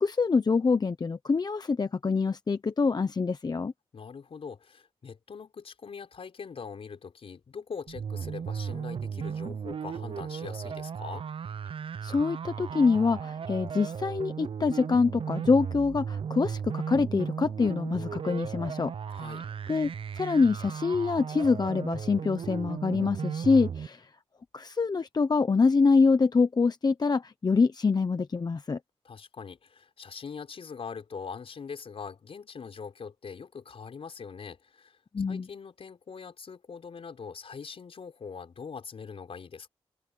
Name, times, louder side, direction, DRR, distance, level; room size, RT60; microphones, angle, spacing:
voice 1, 0.0-3.7 12.0-19.3 19.7-19.9 20.2-24.1 24.5-28.8 35.1-35.5, left 4 dB, 40° left, 0.9 m, -25 dB
voice 2, 3.9-11.3 19.1-19.4 29.0-35.0 35.3-39.7, left 5 dB, 60° left, 5.5 m, -42 dB
sound 1, 7.9-23.9, right 7 dB, 55° right, 0.6 m, -36 dB
open air
cardioid pair, 75°, 11 cm